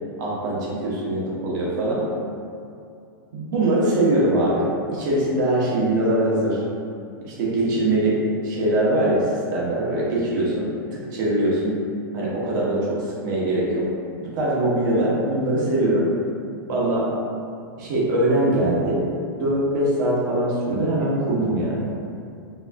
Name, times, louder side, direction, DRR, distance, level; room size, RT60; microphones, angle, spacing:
voice 1, 0.2-2.1 3.3-6.6 7.2-11.8 12.1-13.9 14.3-16.1 16.7-17.1 17.8-19.0 19.4-21.9, right 1 dB, 60° right, -5 dB, 0.9 m, -22 dB
4.0 x 2.2 x 2.5 m, 2.5 s
hypercardioid pair, 140°, 12 cm